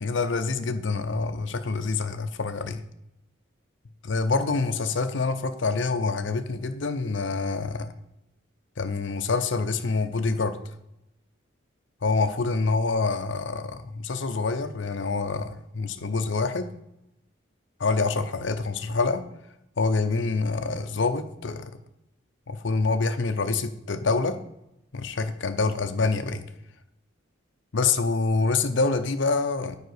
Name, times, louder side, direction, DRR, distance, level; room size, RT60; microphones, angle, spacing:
voice 1, 0.0-2.8 4.0-7.9 8.8-10.6 12.0-15.5 15.7-16.7 17.8-19.2 19.8-21.7 22.5-24.4 24.9-26.4 27.7-29.8, left 4 dB, 65° left, 8 dB, 0.7 m, -26 dB
9.5 x 4.9 x 6.5 m, 0.85 s
head